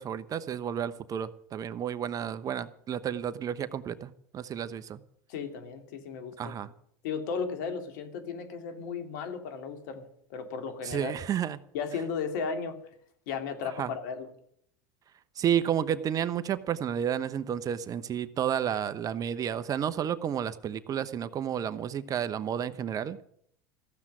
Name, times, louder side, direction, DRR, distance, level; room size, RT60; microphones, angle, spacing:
voice 1, 0.0-5.0 6.4-6.7 10.8-11.6 13.8-13.9 15.4-23.2, right 9 dB, 35° right, 14 dB, 0.9 m, -31 dB
voice 2, 5.3-6.5 7.0-11.2 11.7-12.8 13.3-14.3, left 6 dB, 70° left, 7 dB, 2.7 m, -35 dB
15.0 x 7.4 x 9.8 m, 0.68 s
hypercardioid pair, 95°, 10 cm